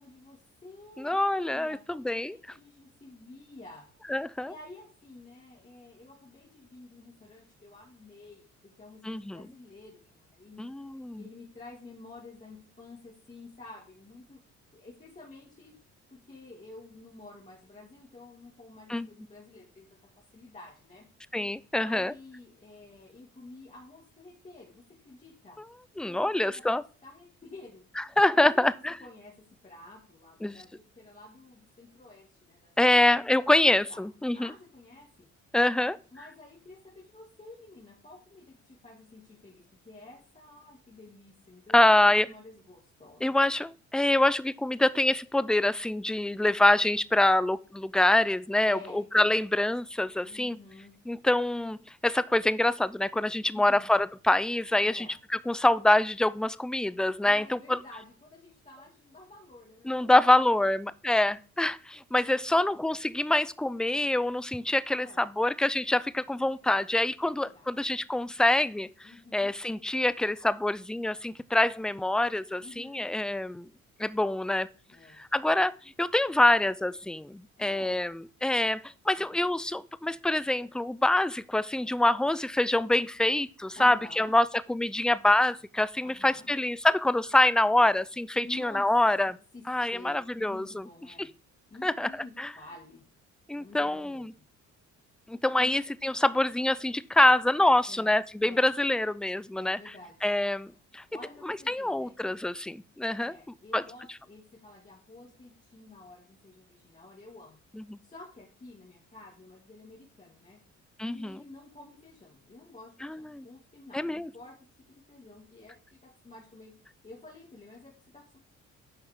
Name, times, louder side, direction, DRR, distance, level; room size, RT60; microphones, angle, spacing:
voice 1, 0.0-3.9 4.5-10.7 11.2-14.4 14.7-15.8 16.1-19.9 20.2-21.0 21.8-25.6 26.0-33.3 33.9-34.0 34.3-35.3 36.1-43.4 48.7-49.5 50.2-50.9 53.5-53.9 54.8-55.2 57.2-60.7 64.9-65.5 66.6-66.9 67.2-67.8 69.0-69.5 72.6-73.1 74.9-75.2 77.6-78.0 79.1-79.5 83.8-84.3 86.0-86.6 88.3-88.9 89.5-89.6 89.9-91.3 91.7-93.0 93.6-94.5 95.6-95.7 97.9-98.1 98.4-98.7 99.6-100.2 100.7-102.2 103.2-107.6 108.0-110.6 111.0-114.5 114.9-116.7 117.0-118.4, left 2 dB, 25° left, -4 dB, 2.2 m, -50 dB
voice 2, 1.0-2.4 4.1-4.5 9.0-9.4 10.6-11.2 18.9-19.1 21.3-22.1 26.0-26.8 28.0-29.0 30.4-30.6 32.8-34.5 35.5-36.0 41.7-42.3 43.2-50.6 51.1-51.8 52.0-55.1 55.5-57.4 59.9-68.9 69.3-73.7 74.0-74.7 75.2-78.8 79.1-89.4 89.7-90.8 91.2-91.3 91.8-92.1 92.4-92.5 93.5-94.3 95.3-99.8 100.2-101.0 101.7-103.3 103.7-103.8 107.8-108.0 111.0-111.4 113.0-113.4 113.9-114.3, left 1 dB, 5° left, 17 dB, 0.3 m, -25 dB
9.4 x 5.5 x 3.6 m, 0.39 s
cardioid pair, 90°, 30 cm